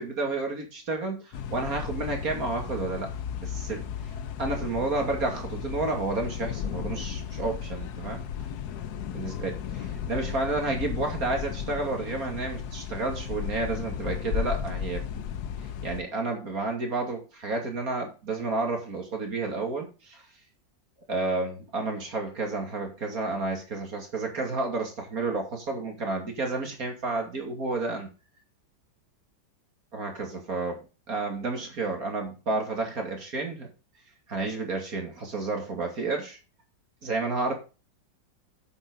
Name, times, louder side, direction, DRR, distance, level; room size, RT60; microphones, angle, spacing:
voice 1, 0.0-3.1 3.4-3.9 4.4-8.2 9.1-15.0 15.8-20.2 21.1-28.1 29.9-33.7 34.3-36.4 37.0-37.5, right 3 dB, 50° right, 2 dB, 3.0 m, -31 dB
sound 1, 1.3-16.0, left 8 dB, 65° left, 1.2 m, -34 dB
9.0 x 7.9 x 4.0 m, 0.32 s
omnidirectional pair, 2.0 m